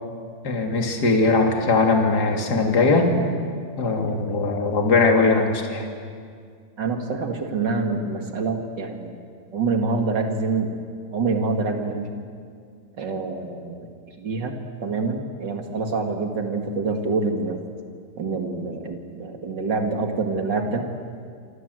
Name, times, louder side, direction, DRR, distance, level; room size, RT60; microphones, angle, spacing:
voice 1, 0.4-3.1 3.8-5.9, left 3 dB, 30° left, 2 dB, 2.7 m, -20 dB
voice 2, 6.8-9.1 9.5-10.7 11.1-12.1 13.0-13.9 14.2-17.6 18.2-20.9, right 4 dB, 40° right, 4 dB, 1.9 m, -26 dB
27.0 x 25.5 x 7.9 m, 2.1 s
omnidirectional pair, 4.5 m